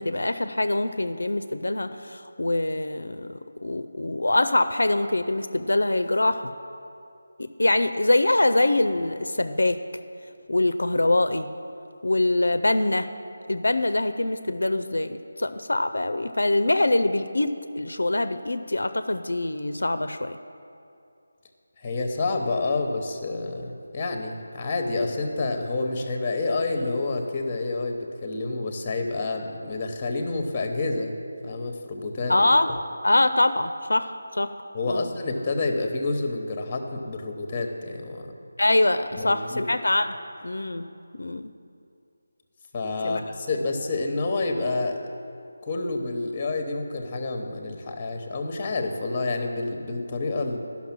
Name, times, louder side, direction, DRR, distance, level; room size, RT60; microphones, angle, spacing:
voice 1, 0.0-3.3 3.6-6.5 7.4-9.8 10.5-11.5 12.0-13.1 13.5-20.4 32.3-32.8 33.0-34.5 34.9-35.1 38.6-40.1 40.4-40.9 41.1-41.5 43.0-43.2, left 2 dB, 80° left, 10 dB, 0.4 m, -24 dB
voice 2, 21.8-31.1 31.4-32.3 34.7-38.3 39.2-39.6 42.7-45.0 45.6-50.6, left 3 dB, 20° left, 4 dB, 0.9 m, -28 dB
11.5 x 5.8 x 5.9 m, 2.6 s
figure-of-eight pair, 165°, 0 cm